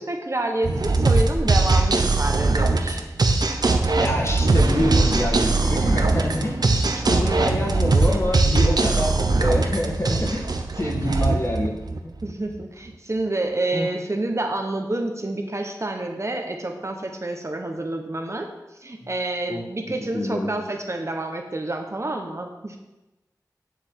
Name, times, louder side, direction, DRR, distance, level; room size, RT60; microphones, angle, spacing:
voice 1, 0.0-3.0 4.5-4.9 7.4-7.6 8.1-8.4 12.2-18.5 18.8-22.8, right 2 dB, 45° right, 3 dB, 1.3 m, -28 dB
sound 1, 0.6-12.3, right 3 dB, 90° right, 0.7 m, -21 dB
voice 2, 4.0-6.7 7.1-10.5 10.8-11.8 12.0-12.1 13.7-13.9 19.5-19.6 20.1-20.5, left 1 dB, 45° left, 1 dB, 1.6 m, -26 dB
9.8 x 7.2 x 3.8 m, 1.0 s
wide cardioid pair, 55°, 7 cm